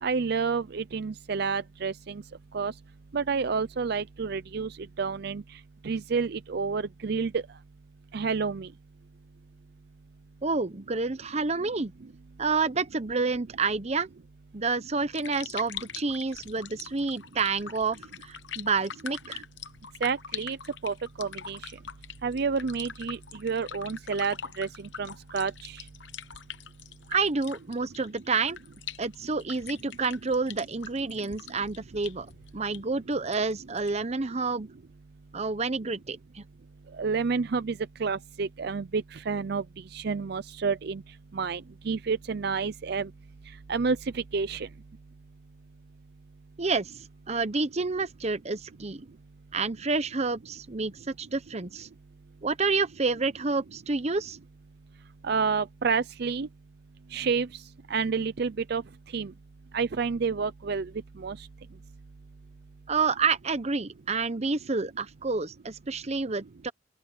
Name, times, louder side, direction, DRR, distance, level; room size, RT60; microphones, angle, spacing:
voice 1, 0.0-2.2 2.5-2.7 3.1-5.4 5.8-7.4 8.1-8.7 20.0-20.6 20.8-21.7 22.2-24.7 25.0-25.8 37.0-39.6 39.9-41.0 41.3-41.6 41.9-43.1 43.7-44.7 55.2-56.5 57.1-57.5 57.9-58.8 59.1-59.3 59.7-60.9 61.2-61.4, right 5 dB, 60° right, 0.5 m, -29 dB
voice 2, 10.4-11.9 12.4-14.1 14.5-19.4 27.1-28.6 29.0-32.3 32.5-34.7 35.3-36.4 46.6-46.9 47.3-49.0 49.5-51.9 52.4-54.4 62.9-66.7, right 4 dB, 35° right, 0.9 m, -29 dB
sound 1, 14.9-34.1, left 8 dB, 70° left, 1.0 m, -44 dB
open air
head